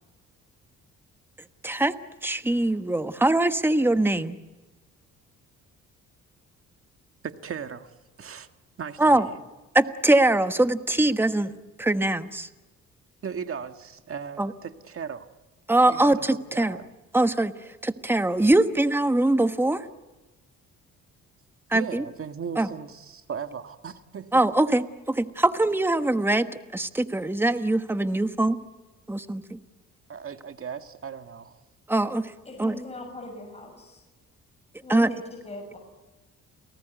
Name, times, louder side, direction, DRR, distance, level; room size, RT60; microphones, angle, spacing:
voice 1, 1.6-1.9 2.2-4.3 9.0-9.3 9.7-11.5 11.8-12.5 14.4-14.5 15.7-16.8 17.1-19.9 21.7-22.0 22.6-22.7 24.3-28.6 29.1-29.6 31.9-32.3 32.6-32.8 34.9-35.1, right 2 dB, 5° right, 9 dB, 1.3 m, -22 dB
voice 2, 7.2-8.5 8.8-9.4 13.2-15.3 15.8-16.8 21.7-24.4 30.1-31.6, right 7 dB, 45° right, 8 dB, 1.8 m, -37 dB
voice 3, 32.5-34.0 34.8-35.8, left 2 dB, 20° left, 2 dB, 7.1 m, -40 dB
30.0 x 18.5 x 9.3 m, 1.2 s
cardioid pair, 90°, 30 cm